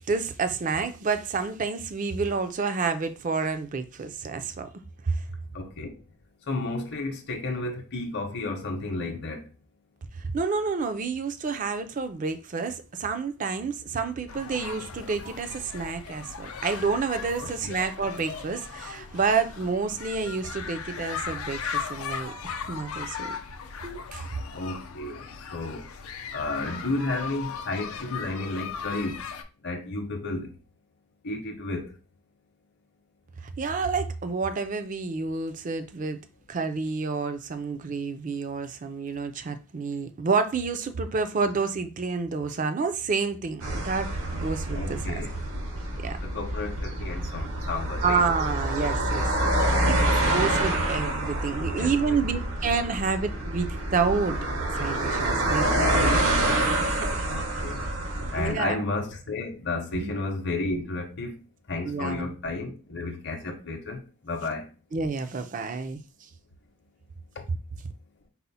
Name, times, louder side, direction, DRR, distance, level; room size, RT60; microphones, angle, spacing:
voice 1, 0.1-4.7 5.0-5.2 10.2-21.6 21.9-23.4 23.8-24.2 33.4-36.2 36.5-45.0 46.0-46.2 48.0-49.5 49.8-54.4 54.8-56.6 58.4-58.8 59.9-60.1 61.8-62.3 64.9-66.0, right 4 dB, 40° right, 0.4 m, -29 dB
voice 2, 5.5-6.0 6.5-9.4 17.4-17.5 24.5-25.2 25.5-25.8 26.3-29.2 29.6-30.5 31.2-31.9 44.7-45.3 46.2-48.2 49.3-49.4 50.4-50.5 51.8-52.2 55.9-56.5 57.3-57.8 58.3-61.3 61.7-64.0 64.2-64.6 67.4-67.5, left 2 dB, 55° left, 0.7 m, -32 dB
sound 1, 14.3-29.4, left 6 dB, 90° left, 0.5 m, -38 dB
sound 2, 43.6-58.5, right 1 dB, 80° right, 1.1 m, -27 dB
4.2 x 2.0 x 4.0 m
head